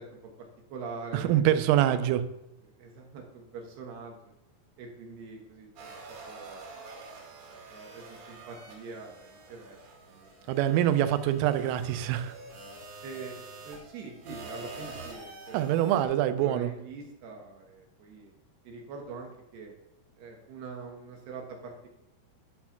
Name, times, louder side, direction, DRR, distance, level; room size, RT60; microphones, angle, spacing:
voice 1, 0.0-1.5 1.8-2.0 2.8-4.3 4.8-6.0 6.2-6.7 7.7-9.8 10.1-10.4 13.0-15.8 16.4-18.3 18.6-19.7 20.2-21.9, right 4 dB, 70° right, 1 dB, 2.8 m, -44 dB
voice 2, 1.1-2.2 10.5-12.3 15.5-16.7, right 12 dB, 85° right, 11 dB, 3.2 m, -25 dB
sound 1, 5.8-16.0, right 3 dB, 50° right, 2.6 m, -46 dB
11.5 x 4.3 x 5.7 m, 0.90 s
omnidirectional pair, 5.7 m